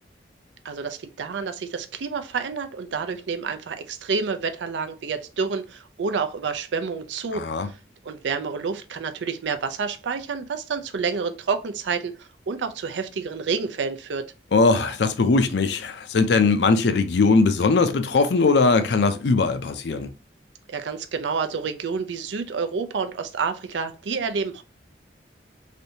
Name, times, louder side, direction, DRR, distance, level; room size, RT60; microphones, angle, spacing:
voice 1, 0.6-7.8 8.0-14.3 20.7-24.6, right 5 dB, 90° right, 0.4 m, -29 dB
voice 2, 7.3-7.7 14.5-20.1, left 3 dB, 75° left, 0.5 m, -20 dB
3.3 x 2.6 x 2.8 m
head